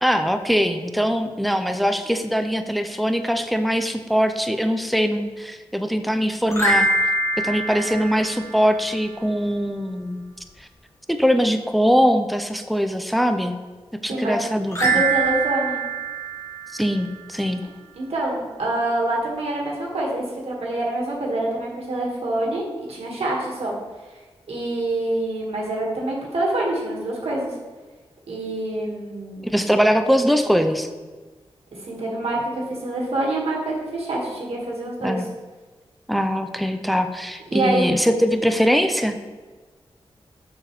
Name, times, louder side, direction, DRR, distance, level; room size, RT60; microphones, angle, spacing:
voice 1, 0.0-6.9 7.4-10.3 10.6-10.7 11.1-13.6 14.0-15.0 16.7-17.6 29.4-30.9 35.0-35.3 36.1-39.2, equal, ahead, 7 dB, 0.5 m, -22 dB
sound 1, 6.5-9.0 14.7-17.3, right 3 dB, 30° left, 1.2 m, -24 dB
voice 2, 14.1-14.4 14.8-15.8 18.0-23.7 24.5-27.5 28.3-29.5 31.8-35.2 37.5-37.9, right 2 dB, 80° right, -2 dB, 1.5 m, -26 dB
6.6 x 5.7 x 3.1 m, 1.3 s
wide cardioid pair, 85°, 10 cm